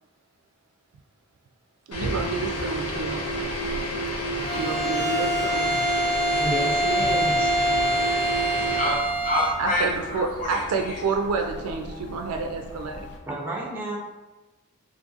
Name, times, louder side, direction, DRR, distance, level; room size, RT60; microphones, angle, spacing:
sound 1, 1.9-9.0, right 1 dB, 80° left, 0.9 m, -29 dB
voice 1, 1.9-3.5 4.5-5.8 8.1-8.2 9.6-13.1, right 4 dB, 80° right, 4 dB, 0.3 m, -29 dB
sound 2, 2.0-13.2, left 1 dB, 55° left, 0.5 m, -42 dB
Bowed string instrument, 4.4-9.6, right 1 dB, 10° left, 0.8 m, -25 dB
voice 2, 6.4-7.5 13.3-14.0, right 1 dB, 10° right, -2 dB, 0.4 m, -31 dB
voice 3, 8.6-11.0, left 1 dB, 35° left, -4 dB, 0.9 m, -28 dB
3.0 x 2.4 x 3.8 m, 1.1 s
head